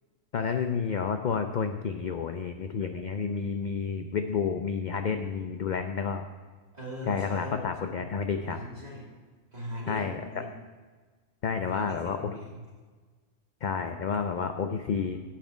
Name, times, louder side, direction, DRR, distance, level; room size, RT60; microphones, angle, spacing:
voice 1, 0.3-6.2 7.1-8.6 9.9-10.5 11.4-12.4 13.6-15.2, left 6 dB, 55° left, 7 dB, 0.5 m, -30 dB
voice 2, 6.7-7.5 8.3-9.1 9.5-10.5 11.7-12.5, equal, 30° right, -5 dB, 2.8 m, -40 dB
8.7 x 5.9 x 7.9 m, 1.4 s
omnidirectional pair, 1.3 m